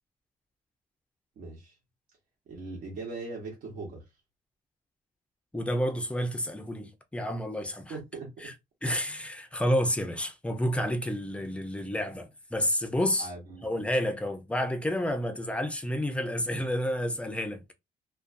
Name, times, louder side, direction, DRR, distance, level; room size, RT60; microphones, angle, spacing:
voice 1, 1.4-1.7 2.5-4.0 7.9-8.5 13.2-13.7, right 3 dB, 75° right, 1.0 m, -40 dB
voice 2, 5.5-8.0 8.4-8.5 8.8-13.3 13.6-17.7, equal, 10° left, 0.4 m, -30 dB
2.5 x 2.2 x 2.5 m
cardioid pair, 130°, 15 cm